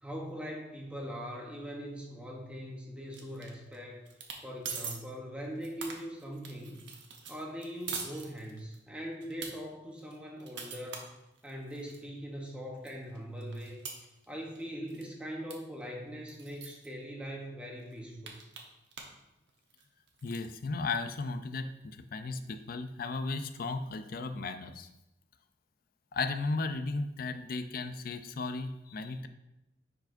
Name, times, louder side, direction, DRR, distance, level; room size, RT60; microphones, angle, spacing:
voice 1, 0.0-4.0 4.4-7.0 7.3-11.1 11.4-13.8 14.3-18.4, equal, 5° right, -1 dB, 0.9 m, -41 dB
sound 1, 3.1-3.8 4.1-4.4 4.6-5.0 5.4-8.8 9.2-9.5 10.0-12.0 12.5-12.6 12.8-14.6 14.9-15.1 15.5-15.6 15.8-15.9 16.3-16.9 17.4-17.5 17.8-19.2 19.5-20.5, right 5 dB, 75° right, 1.0 m, -43 dB
voice 2, 20.2-24.9 26.1-29.3, left 3 dB, 55° left, 10 dB, 0.5 m, -35 dB
10.0 x 4.6 x 2.6 m, 0.94 s
head